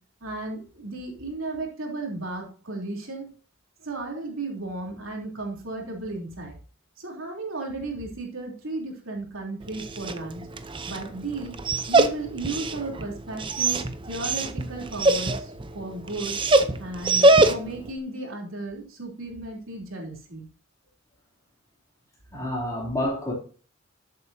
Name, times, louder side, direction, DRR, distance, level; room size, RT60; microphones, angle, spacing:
voice 1, 0.2-3.3 3.8-6.5 7.0-10.4 10.8-11.5 11.9-16.4 16.8-20.5, right 2 dB, 70° right, 3.3 m, -34 dB
Dog, 9.6-17.9, right 2 dB, 25° right, 0.6 m, -24 dB
voice 2, 22.3-23.3, left 1 dB, 15° left, 3.0 m, -28 dB
13.0 x 7.8 x 2.7 m
head